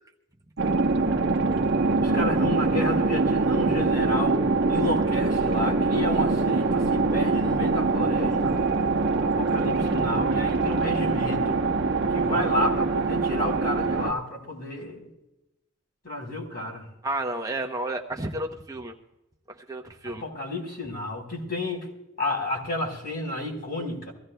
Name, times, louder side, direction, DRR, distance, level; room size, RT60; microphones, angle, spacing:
sound 1, 0.6-14.1, right 3 dB, 60° right, 0.9 m, -24 dB
voice 1, 2.0-8.6 9.2-11.6 12.1-15.1 16.0-16.9 20.0-21.9 22.2-24.1, left 2 dB, 45° left, 0 dB, 4.1 m, -31 dB
voice 2, 17.0-18.9 19.5-20.2, right 1 dB, 15° right, 2 dB, 0.8 m, -32 dB
24.0 x 16.0 x 2.2 m, 0.93 s
head